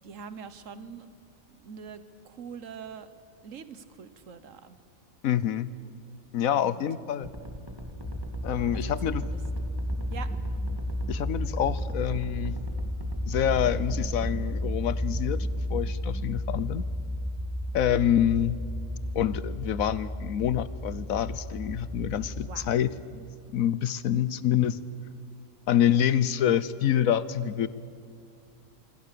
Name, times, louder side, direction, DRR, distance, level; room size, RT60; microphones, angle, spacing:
voice 1, 0.0-1.1 1.5-3.1 3.4-4.8 6.5-6.8 8.8-9.4 10.1-10.3 22.4-22.7, right 6 dB, 70° right, 12 dB, 1.5 m, -43 dB
voice 2, 5.2-5.7 6.3-7.3 8.4-9.2 11.1-12.6 13.3-16.8 17.7-18.6 19.1-24.8 25.7-27.7, left 10 dB, 90° left, 16 dB, 1.3 m, -27 dB
sound 1, 7.2-14.3, equal, 15° right, 2.2 m, -40 dB
sound 2, 7.9-22.7, equal, 10° left, 1.6 m, -33 dB
26.0 x 24.0 x 6.8 m, 2.3 s
omnidirectional pair, 1.4 m